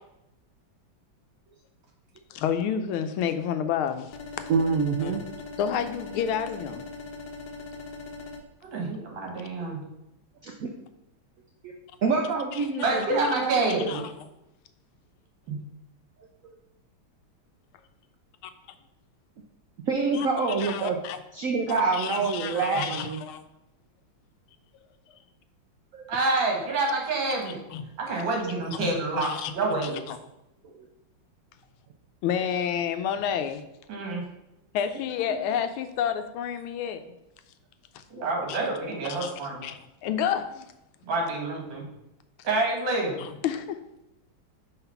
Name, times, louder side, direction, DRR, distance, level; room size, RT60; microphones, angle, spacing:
voice 1, 2.3-4.2 5.0-5.2 5.6-6.9 12.5-13.4 13.9-14.1 20.1-20.3 20.6-21.2 21.7-23.4 27.7-27.8 28.7-29.5 29.8-30.2 32.2-33.6 34.7-37.0 37.9-38.0 38.5-38.6 39.0-39.3 39.6-40.7 43.2-43.8, left 8 dB, 85° left, 9 dB, 1.5 m, -30 dB
sound 1, 4.1-8.4, left 3 dB, 60° left, 1.3 m, -40 dB
voice 2, 4.5-5.2 10.4-10.7 11.6-11.7 12.0-14.0 19.8-21.0 21.3-23.2 25.9-26.1, right 4 dB, 80° right, 1 dB, 0.7 m, -26 dB
voice 3, 8.7-9.8 12.8-13.8 15.5-15.6 26.1-27.6 28.0-30.0 33.9-34.2 38.1-39.6 41.0-41.8 42.4-43.2, right 2 dB, 65° right, 0 dB, 2.1 m, -27 dB
5.8 x 3.9 x 5.5 m, 0.89 s
omnidirectional pair, 2.3 m